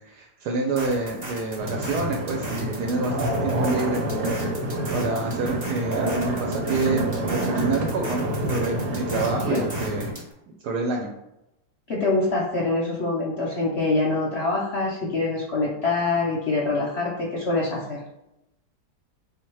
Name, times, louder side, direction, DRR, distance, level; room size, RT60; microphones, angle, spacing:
voice 1, 0.1-4.4 4.9-10.1 10.6-11.1, right 3 dB, 75° right, 0 dB, 1.2 m, -28 dB
sound 1, 0.8-10.3, right 1 dB, 35° right, 0.6 m, -38 dB
sound 2, 1.6-10.1, right 1 dB, 55° right, 1.1 m, -28 dB
voice 2, 9.1-9.6 11.9-18.0, left 3 dB, 55° left, -3 dB, 0.7 m, -25 dB
3.6 x 2.8 x 4.6 m, 0.89 s
omnidirectional pair, 1.8 m